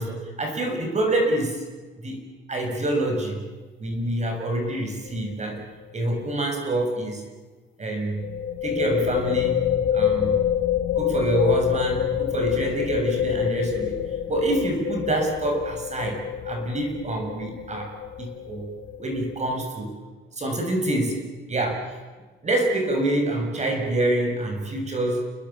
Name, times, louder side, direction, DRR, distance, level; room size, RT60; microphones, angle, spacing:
voice 1, 0.0-1.6 2.0-2.2 2.5-3.4 3.8-5.6 5.9-7.2 7.8-8.2 8.6-9.7 9.9-10.4 10.9-14.0 14.3-16.2 16.5-18.7 19.0-19.9 20.3-21.2 21.5-21.8 22.4-25.3, right 1 dB, 35° right, 3 dB, 7.0 m, -26 dB
sound 1, 5.1-5.3 5.6-5.7 8.2-19.5, left 10 dB, 85° left, 1.7 m, -27 dB
30.0 x 21.0 x 7.3 m, 1.3 s
cardioid pair, 90°, 20 cm